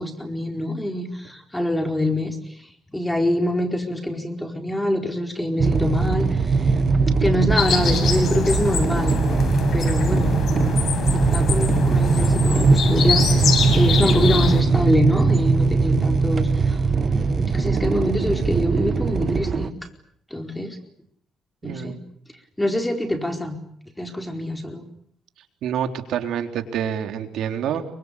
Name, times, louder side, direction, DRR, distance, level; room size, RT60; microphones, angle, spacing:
voice 1, 0.0-6.8 7.2-9.2 9.7-10.4 11.1-19.9 20.3-20.8 21.6-22.0 22.6-23.6 24.0-24.8, left 1 dB, 10° left, 5 dB, 4.5 m, -25 dB
sound 1, 5.6-19.7, right 4 dB, 45° right, 2.1 m, -20 dB
sound 2, 7.6-14.6, left 5 dB, 60° left, 7.0 m, -24 dB
voice 2, 21.6-22.0 25.6-27.8, right 9 dB, 80° right, 6 dB, 3.7 m, -27 dB
27.5 x 24.5 x 8.5 m, 0.67 s
cardioid pair, 90°, 0 cm